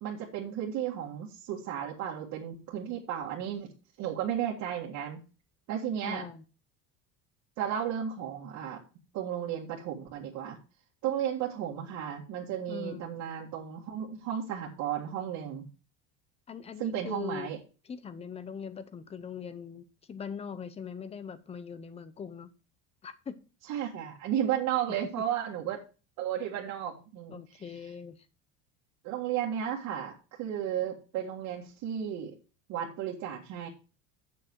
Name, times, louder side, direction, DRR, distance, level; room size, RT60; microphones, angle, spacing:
voice 1, 0.0-3.7 4.0-5.2 5.7-6.2 7.6-8.8 9.1-10.6 11.0-15.7 16.8-17.6 23.7-25.8 26.2-27.6 29.0-32.3 32.7-33.7, right 10 dB, 50° right, 1.9 m, -34 dB
voice 2, 6.0-6.4 12.7-13.1 16.5-17.5 17.8-22.5 23.0-23.4 24.9-25.1 27.3-28.3, left 6 dB, 15° left, 0.7 m, -41 dB
8.6 x 7.6 x 4.6 m
cardioid pair, 155°, 36 cm